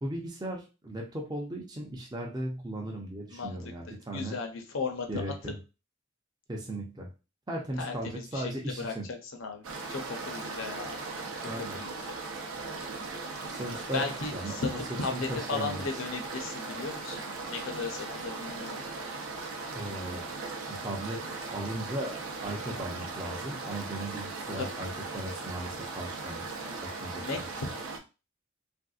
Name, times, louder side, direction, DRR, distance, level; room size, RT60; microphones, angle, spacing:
voice 1, 0.0-4.4 5.1-5.5 6.5-7.1 7.5-9.0 11.5-11.8 13.4-14.8 15.1-15.8 19.7-20.2 20.6-22.1 22.4-26.6 26.8-27.2, right 1 dB, 20° right, 0 dB, 0.5 m, -37 dB
voice 2, 3.9-5.5 7.8-11.0 11.4-12.1 13.9-19.0 24.6-24.7 27.2-27.7, left 4 dB, 65° left, 4 dB, 0.7 m, -36 dB
sound 1, 9.6-28.0, right 3 dB, 70° right, 0.6 m, -38 dB
3.4 x 2.6 x 2.4 m, 0.30 s
head